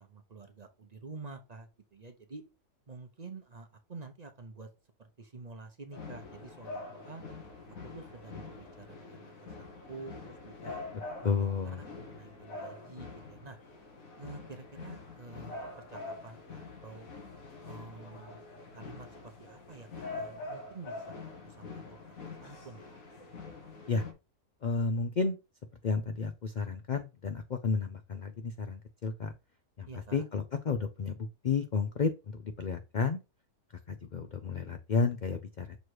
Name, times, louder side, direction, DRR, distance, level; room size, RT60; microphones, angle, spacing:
voice 1, 0.0-2.4 2.9-4.7 5.0-7.2 7.9-10.8 11.2-11.5 11.8-13.6 14.2-17.1 17.6-18.4 18.7-22.8 29.9-30.2, right 3 dB, 35° right, 6 dB, 0.7 m, -49 dB
sound 1, 5.9-24.1, left 3 dB, 65° left, 1.7 m, -45 dB
voice 2, 11.2-11.8 23.9-24.0 24.6-25.4 25.8-29.3 29.8-33.2 33.9-35.8, left 5 dB, 90° left, 7 dB, 0.4 m, -32 dB
6.6 x 3.1 x 4.6 m, 0.27 s
omnidirectional pair, 1.6 m